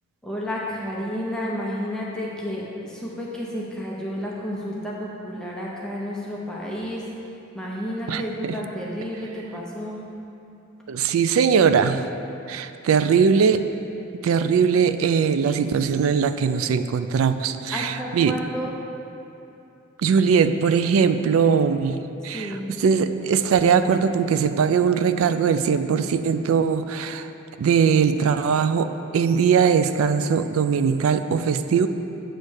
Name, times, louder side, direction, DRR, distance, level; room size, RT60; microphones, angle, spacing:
voice 1, 0.2-7.1 7.5-10.0 17.7-18.7 22.3-22.7, equal, 5° left, -5 dB, 0.7 m, -31 dB
voice 2, 8.1-8.6 10.9-12.1 12.5-13.6 14.2-18.4 20.0-27.3 27.6-31.9, right 6 dB, 85° right, 10 dB, 0.3 m, -20 dB
8.0 x 3.2 x 6.4 m, 2.8 s
head